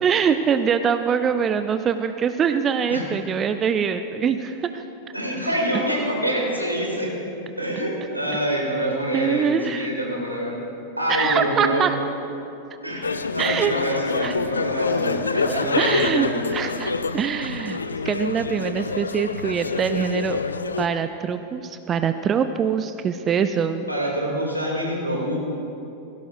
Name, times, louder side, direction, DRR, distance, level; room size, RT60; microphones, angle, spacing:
voice 1, 0.0-4.8 9.1-9.9 11.1-12.0 13.4-13.7 14.2-14.3 15.5-17.8 18.0-20.4 20.8-23.8, right 7 dB, 25° right, 10 dB, 0.4 m, -23 dB
voice 2, 5.1-7.2 7.6-10.6 11.0-11.8 12.8-13.1 13.3-16.5 23.9-25.4, equal, 85° right, -2 dB, 2.6 m, -26 dB
sound 1, 13.0-20.9, left 4 dB, 75° left, 0.4 m, -27 dB
17.0 x 16.5 x 2.6 m, 2.8 s
figure-of-eight pair, 90°, 0 cm